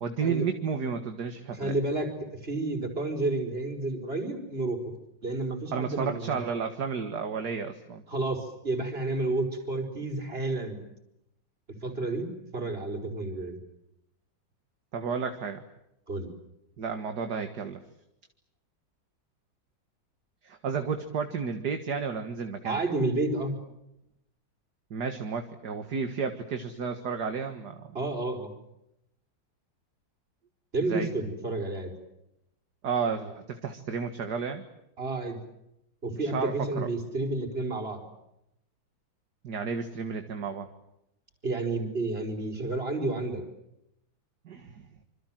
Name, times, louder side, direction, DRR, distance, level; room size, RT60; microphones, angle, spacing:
voice 1, 0.0-1.8 5.7-8.0 14.9-15.6 16.8-17.8 20.4-22.8 24.9-27.9 30.9-31.1 32.8-34.6 36.2-36.9 39.4-40.7 44.5-44.9, right 5 dB, 55° right, 7 dB, 2.2 m, -32 dB
voice 2, 1.5-4.8 5.2-6.4 8.1-10.8 11.7-13.6 16.1-16.3 22.6-23.5 27.9-28.5 30.7-31.9 35.0-35.4 36.0-38.0 41.4-43.4, right 2 dB, 25° right, 4 dB, 5.0 m, -30 dB
27.0 x 26.0 x 7.6 m, 0.84 s
omnidirectional pair, 2.2 m